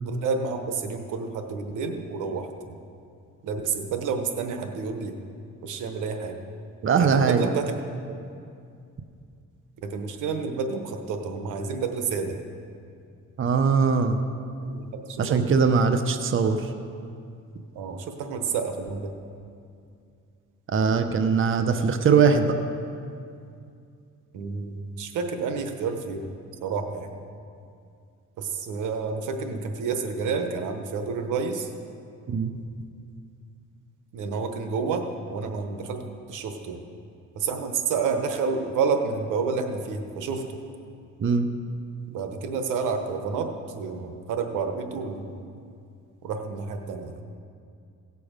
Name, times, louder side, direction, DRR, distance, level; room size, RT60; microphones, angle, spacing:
voice 1, 0.0-2.8 3.4-5.2 5.6-6.4 7.0-7.8 8.1-8.2 9.8-12.4 14.6-15.5 17.7-19.1 24.3-26.3 26.6-27.1 28.4-31.7 34.1-36.0 36.3-36.8 37.3-40.5 42.1-45.4 46.2-47.2, right 5 dB, 90° right, 6 dB, 1.1 m, -29 dB
voice 2, 6.8-7.5 13.4-14.2 15.2-16.7 20.7-22.5 32.3-32.5 41.2-41.5, right 5 dB, 45° right, 7 dB, 0.8 m, -21 dB
17.0 x 7.0 x 5.1 m, 2.4 s
cardioid pair, 90°, 30 cm